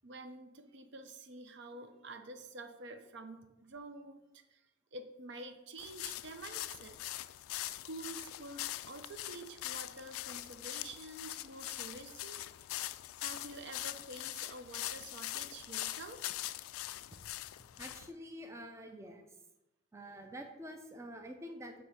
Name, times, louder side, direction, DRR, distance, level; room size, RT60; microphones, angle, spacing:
voice 1, 0.0-4.6 4.9-7.0 7.7-12.4 13.2-16.3, right 2 dB, 55° right, 8 dB, 0.6 m, -48 dB
sound 1, 5.8-18.1, left 15 dB, 85° left, 0.3 m, -42 dB
voice 2, 17.8-19.3 19.9-21.8, equal, 15° right, 4 dB, 0.5 m, -47 dB
7.8 x 3.0 x 6.2 m, 0.97 s
head